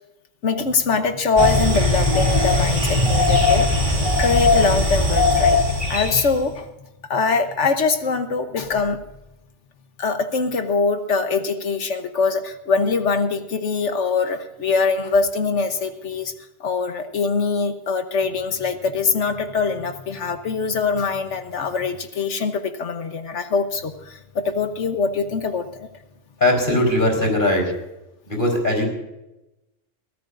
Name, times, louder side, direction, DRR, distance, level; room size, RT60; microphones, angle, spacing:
voice 1, 0.4-3.7 4.2-5.6 5.9-6.7 7.1-9.0 10.0-16.3 16.6-25.9, left 4 dB, 70° left, 8 dB, 1.4 m, -23 dB
sound 1, 1.4-6.3, left 2 dB, 40° right, 2.5 m, -19 dB
voice 2, 26.4-27.7 28.3-28.9, left 1 dB, 40° left, 2 dB, 4.5 m, -19 dB
23.0 x 14.5 x 2.6 m, 0.93 s
omnidirectional pair, 1.2 m